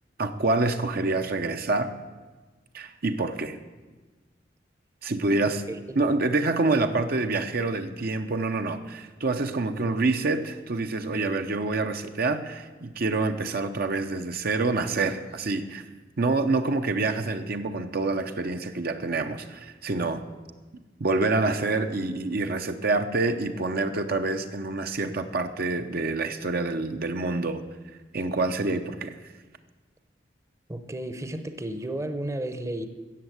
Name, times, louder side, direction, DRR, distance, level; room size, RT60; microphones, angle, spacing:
voice 1, 0.2-1.9 2.7-3.6 5.0-5.6 6.0-15.9 16.2-20.2 21.0-27.6 28.1-29.2, right 3 dB, 55° right, 7 dB, 0.8 m, -27 dB
voice 2, 5.7-6.1 30.7-32.9, right 1 dB, 15° right, 9 dB, 0.8 m, -33 dB
13.5 x 8.2 x 8.0 m, 1.3 s
head